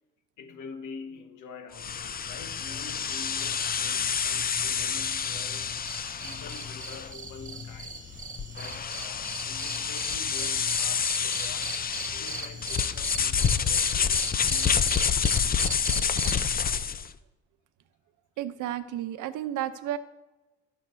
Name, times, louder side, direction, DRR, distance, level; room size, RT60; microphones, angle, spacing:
voice 1, 0.4-5.7 6.2-8.1 8.5-11.8 12.1-15.4, left 5 dB, 85° left, 5 dB, 1.5 m, -46 dB
sound 1, 1.7-17.1, left 7 dB, 30° left, 0.5 m, -28 dB
sound 2, 5.8-16.5, right 3 dB, 25° right, 1.6 m, -40 dB
voice 2, 18.4-20.0, right 12 dB, 85° right, 12 dB, 0.8 m, -32 dB
16.0 x 7.3 x 2.7 m, 1.1 s
cardioid pair, 90°, 30 cm